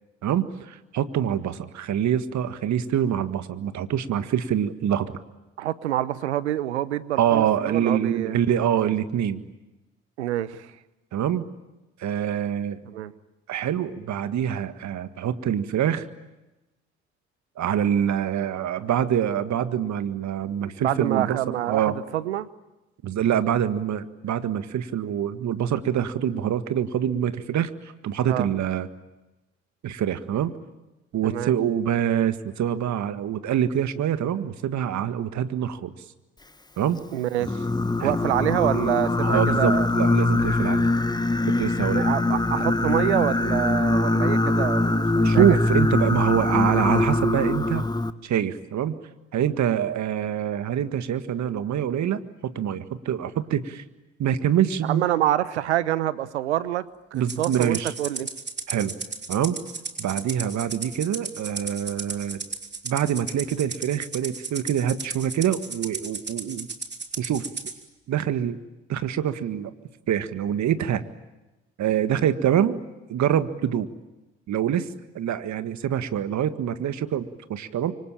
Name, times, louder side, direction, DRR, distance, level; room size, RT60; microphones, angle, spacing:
voice 1, 0.2-5.2 7.2-9.4 11.1-11.5 12.0-12.8 13.5-16.1 17.6-21.9 23.0-28.9 29.8-30.5 31.1-35.9 36.8-37.0 38.0-38.1 39.2-40.9 41.5-42.4 45.2-47.9 48.2-49.0 49.3-53.8 54.2-55.0 57.1-57.9 58.7-58.9 59.3-59.6 60.0-62.4 62.8-66.7 67.2-67.5 68.1-68.6 68.9-69.7 70.1-71.0 71.8-72.8 73.1-73.9 74.5-74.9 75.2-77.9, right 9 dB, 60° right, 11 dB, 1.8 m, -25 dB
voice 2, 5.6-8.4 10.2-10.7 12.9-13.1 20.8-22.5 28.3-28.5 31.2-31.6 37.1-37.7 38.0-39.9 41.9-45.6 54.8-58.3, right 13 dB, 90° right, 17 dB, 0.9 m, -27 dB
Singing, 37.4-48.1, left 2 dB, 10° left, 1.5 m, -22 dB
Rattle (instrument), 57.3-67.8, right 4 dB, 30° right, 3.7 m, -34 dB
27.0 x 24.5 x 8.9 m, 1.0 s
hypercardioid pair, 50°, 33 cm